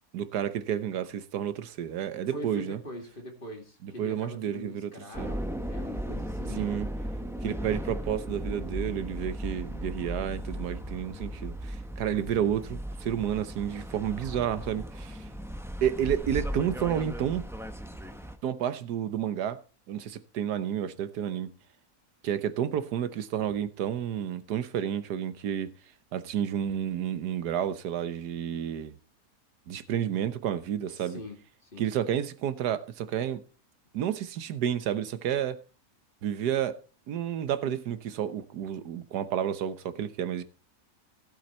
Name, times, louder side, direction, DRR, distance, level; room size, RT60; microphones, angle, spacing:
voice 1, 0.1-2.8 3.8-5.3 6.5-6.9 7.4-15.3 15.8-17.5 18.4-19.6 19.9-21.5 22.2-25.7 26.1-29.0 29.7-31.2 31.8-33.4 33.9-35.6 36.2-36.8 37.1-40.4, right 9 dB, 85° right, 1.4 m, -30 dB
voice 2, 2.3-6.7 30.8-31.9, left 1 dB, 35° left, 2.4 m, -43 dB
sound 1, 5.1-18.4, equal, ahead, 0.7 m, -36 dB
15.5 x 7.9 x 4.3 m
omnidirectional pair, 1.7 m